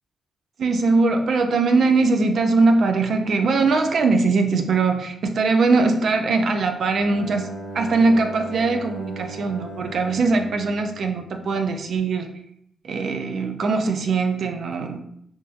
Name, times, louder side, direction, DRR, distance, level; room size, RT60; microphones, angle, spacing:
voice 1, 0.6-7.5 7.7-12.3 12.8-15.0, right 3 dB, 65° right, 5 dB, 0.4 m, -21 dB
Bowed string instrument, 6.9-11.7, right 1 dB, 70° left, 0.5 m, -38 dB
3.7 x 2.6 x 2.4 m, 0.71 s
cardioid pair, 80°, 0 cm